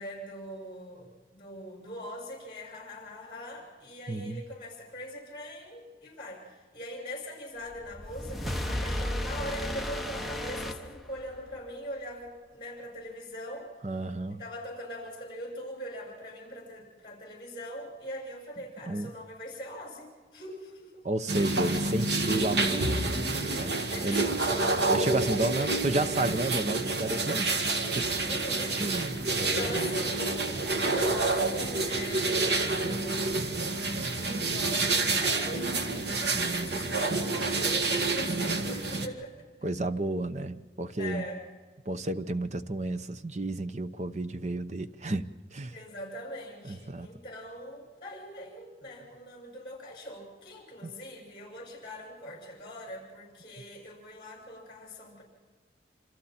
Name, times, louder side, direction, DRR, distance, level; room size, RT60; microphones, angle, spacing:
voice 1, 0.0-13.7 14.3-21.1 23.9-24.9 25.4-26.0 28.2-28.8 29.4-39.4 39.6-39.7 41.0-41.5 45.7-55.2, equal, 30° left, -1 dB, 6.6 m, -42 dB
voice 2, 4.1-4.4 13.8-14.4 18.9-19.1 21.0-23.8 24.0-24.3 24.9-28.1 28.8-29.7 36.3-36.8 39.6-41.2 41.9-45.7 46.6-47.1 50.8-50.9, right 2 dB, 40° right, 11 dB, 0.8 m, -32 dB
sound 1, 7.7-11.5, left 1 dB, ahead, 1.1 m, -34 dB
sound 2, 21.3-39.1, right 3 dB, 75° right, 2.0 m, -28 dB
27.5 x 27.0 x 4.3 m, 1.4 s
head